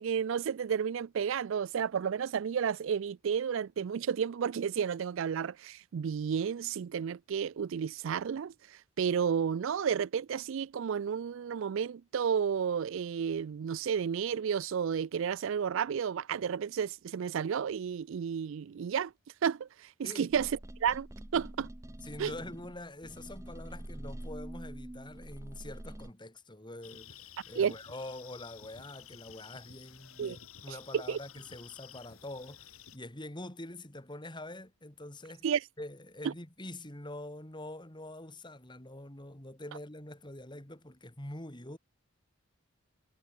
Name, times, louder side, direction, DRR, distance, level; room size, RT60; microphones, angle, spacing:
voice 1, 0.0-19.1 19.4-21.1 21.3-21.7 22.2-22.3 27.6-27.7 30.2-30.4 30.7-31.2 35.4-35.6, right 7 dB, 60° right, 0.3 m, -32 dB
sound 1, 20.3-26.1, right 1 dB, 15° right, 0.7 m, -45 dB
voice 2, 22.0-35.5 35.8-41.8, left 1 dB, 20° left, 2.7 m, -45 dB
sound 2, 26.8-33.0, left 9 dB, 75° left, 4.5 m, -53 dB
head